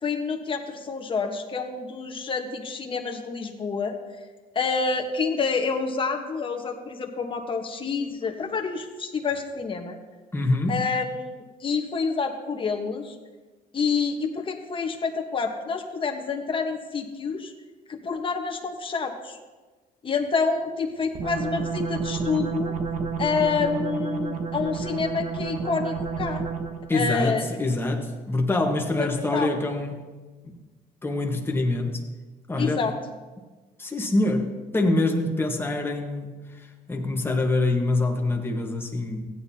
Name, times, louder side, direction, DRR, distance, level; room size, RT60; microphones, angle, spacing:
voice 1, 0.0-3.9 4.5-10.0 10.7-13.1 13.7-17.5 17.9-19.4 20.0-22.7 23.2-26.4 26.9-27.5 29.0-29.5 32.6-32.9, left 5 dB, 30° left, 4 dB, 1.2 m, -28 dB
voice 2, 10.3-10.8 26.9-30.0 30.4-30.6 31.0-32.0 32.5-32.8 33.8-39.2, left 2 dB, 15° left, 2 dB, 1.3 m, -25 dB
sound 1, 21.1-26.9, right 5 dB, 45° right, 1.1 m, -30 dB
15.5 x 9.2 x 2.8 m, 1.3 s
cardioid pair, 110°, 17 cm